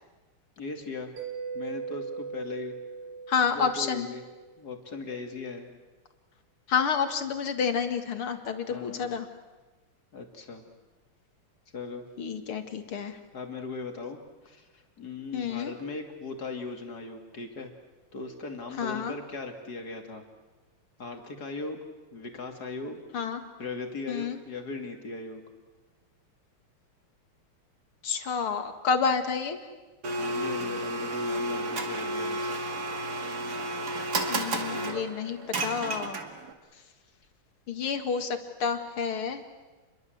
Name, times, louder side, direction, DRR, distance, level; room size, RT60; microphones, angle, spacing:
voice 1, 0.6-1.1 1.5-2.8 3.5-4.2 4.6-5.7 8.7-9.1 10.1-10.6 11.7-12.0 13.3-14.2 14.4-17.7 18.1-20.2 21.0-21.8 22.1-23.0 23.6-25.4 30.3-32.5, left 3 dB, 45° left, 4 dB, 3.1 m, -38 dB
Mallet percussion, 1.2-4.6, right 5 dB, 75° right, 3.1 m, -39 dB
voice 2, 3.3-4.1 6.7-9.3 12.2-13.2 15.3-15.7 18.8-19.1 23.1-23.4 24.1-24.4 28.0-29.6 34.3-36.2 37.7-39.4, left 6 dB, 80° left, 7 dB, 2.8 m, -29 dB
Domestic sounds home sounds, 30.0-36.5, right 1 dB, 45° right, 2.6 m, -32 dB
28.0 x 22.5 x 8.0 m, 1.2 s
omnidirectional pair, 2.4 m